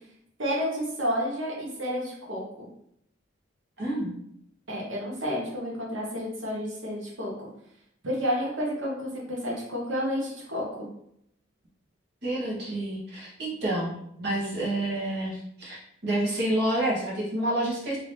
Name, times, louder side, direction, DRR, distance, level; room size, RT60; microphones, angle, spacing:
voice 1, 0.4-2.7 4.7-7.5 8.0-10.9, equal, 75° right, -3 dB, 1.1 m, -30 dB
voice 2, 3.8-4.1 12.2-15.8 16.0-18.0, right 1 dB, 55° right, -6 dB, 1.3 m, -28 dB
2.9 x 2.7 x 3.3 m, 0.73 s
head